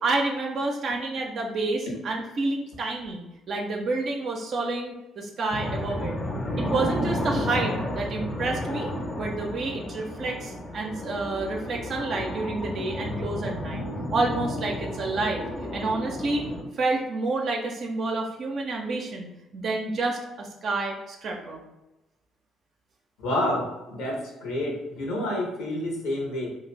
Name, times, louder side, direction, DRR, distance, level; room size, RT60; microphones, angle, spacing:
voice 1, 0.0-6.2 6.6-13.9 14.1-15.4 15.7-16.4 16.8-19.3 19.5-21.6, right 3 dB, 55° right, 0 dB, 0.4 m, -29 dB
sound 1, 5.5-16.6, left 1 dB, 35° left, 0.5 m, -32 dB
voice 2, 23.2-26.5, left 1 dB, 70° left, -1 dB, 0.8 m, -29 dB
2.5 x 2.2 x 3.2 m, 1.0 s
hypercardioid pair, 50°, 0 cm